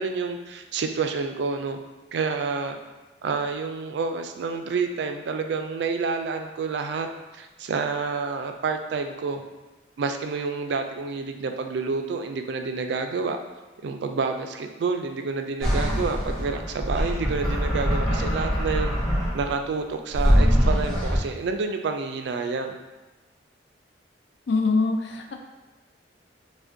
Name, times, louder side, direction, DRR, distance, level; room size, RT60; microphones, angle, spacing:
voice 1, 0.0-1.8 2.1-2.8 3.2-7.1 7.3-9.4 10.0-13.4 13.8-18.9 19.3-22.8, right 4 dB, 65° right, 6 dB, 0.3 m, -28 dB
sound 1, 15.6-19.6 20.1-21.2, equal, 5° left, 0.8 m, -23 dB
voice 2, 24.5-25.3, left 3 dB, 65° left, 2 dB, 0.4 m, -23 dB
4.8 x 2.1 x 2.6 m, 1.2 s
head